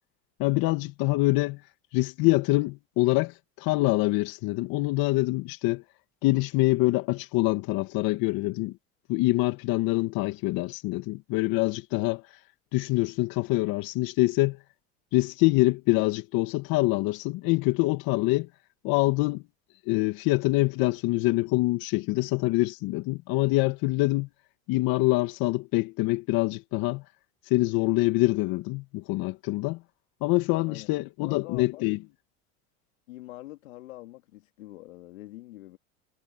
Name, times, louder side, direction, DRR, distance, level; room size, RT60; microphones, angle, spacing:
voice 1, 0.4-1.6 1.9-5.8 6.2-8.8 9.1-12.4 12.7-14.6 15.1-18.5 18.8-19.4 19.9-24.3 24.7-27.0 27.4-29.8 30.2-32.0, left 21 dB, 65° left, 2.2 m, -25 dB
voice 2, 31.2-31.9 33.1-35.8, left 17 dB, 85° left, 3.9 m, -44 dB
supercardioid pair, 90°, 38 cm